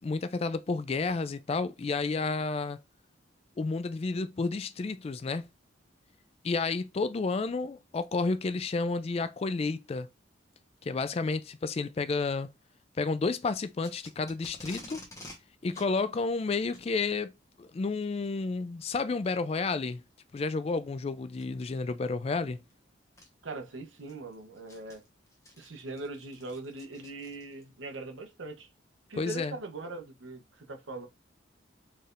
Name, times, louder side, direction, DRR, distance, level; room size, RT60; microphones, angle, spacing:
voice 1, 0.0-2.8 3.6-5.5 6.4-10.1 10.8-12.5 13.0-15.0 15.6-17.3 17.6-20.0 20.3-22.6 29.2-29.6, left 4 dB, 30° left, 0.3 m, -31 dB
Packing tape duct tape, 13.8-15.4 15.7-15.9 16.6-16.9 18.0-18.2 18.9-19.0 19.7-19.8 21.3-21.6 22.7-22.8 23.2-23.3 23.8-27.7, left 1 dB, 15° left, 1.1 m, -49 dB
voice 2, 23.4-25.0 25.6-28.7 29.1-31.1, right 2 dB, 85° right, 0.9 m, -41 dB
4.4 x 3.3 x 2.5 m
head